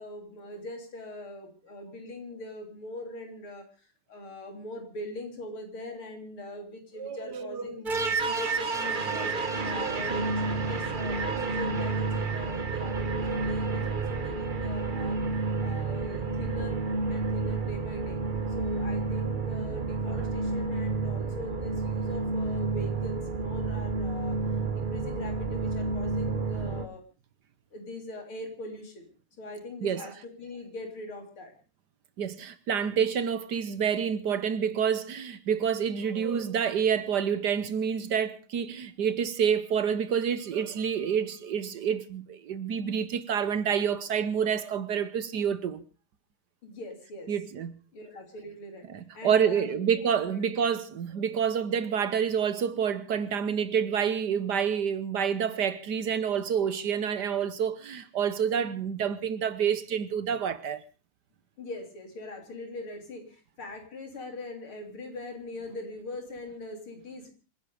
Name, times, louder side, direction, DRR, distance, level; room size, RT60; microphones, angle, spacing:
voice 1, 0.0-9.3 9.6-15.2 15.6-16.8 17.1-18.2 18.5-24.4 24.7-27.0 27.7-29.1 29.4-31.5 46.6-47.3 47.9-48.9 49.1-50.4 61.6-67.3, left 1 dB, 90° left, 4.4 m, -41 dB
voice 2, 7.0-7.7 29.8-30.1 32.2-45.8 47.3-47.7 48.9-60.8, right 7 dB, 60° right, 1.5 m, -28 dB
sound 1, 7.9-26.9, right 4 dB, 30° right, 1.1 m, -30 dB
26.5 x 11.0 x 4.9 m
omnidirectional pair, 2.3 m